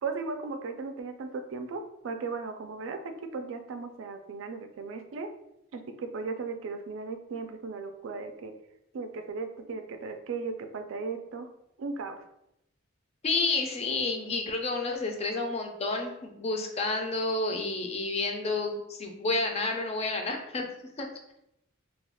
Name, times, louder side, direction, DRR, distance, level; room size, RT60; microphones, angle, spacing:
voice 1, 0.0-5.3 5.7-8.5 8.9-11.5 11.8-12.2, right 4 dB, 80° right, 7 dB, 0.3 m, -36 dB
voice 2, 13.2-20.7 21.0-21.1, left 3 dB, 35° left, 3 dB, 0.4 m, -30 dB
2.3 x 2.2 x 3.4 m, 0.82 s
head